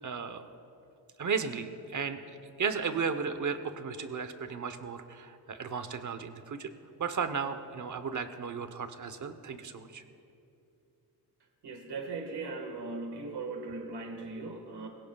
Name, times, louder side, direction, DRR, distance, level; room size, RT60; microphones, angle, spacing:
voice 1, 0.0-0.4 1.2-6.7 7.0-10.0, right 6 dB, 50° right, 9 dB, 0.9 m, -35 dB
voice 2, 11.6-14.9, right 3 dB, 75° right, 3 dB, 1.7 m, -38 dB
23.0 x 16.5 x 2.3 m, 2.8 s
wide cardioid pair, 140°, 40 cm